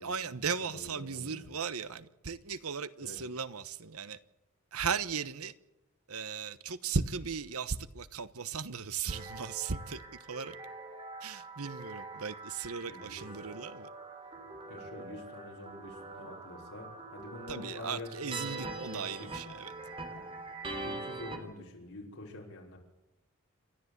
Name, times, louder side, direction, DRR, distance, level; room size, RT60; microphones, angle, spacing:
voice 1, 0.0-4.2 4.7-5.5 6.1-10.6 11.2-13.9 17.5-19.7, right 5 dB, 80° right, 1.1 m, -37 dB
voice 2, 0.6-1.5 3.0-3.2 12.9-13.2 14.7-19.3 20.1-20.3 20.8-22.8, left 2 dB, 70° left, 5.5 m, -47 dB
sound 1, 9.1-21.4, right 2 dB, 25° right, 3.4 m, -44 dB
28.5 x 12.5 x 8.2 m
head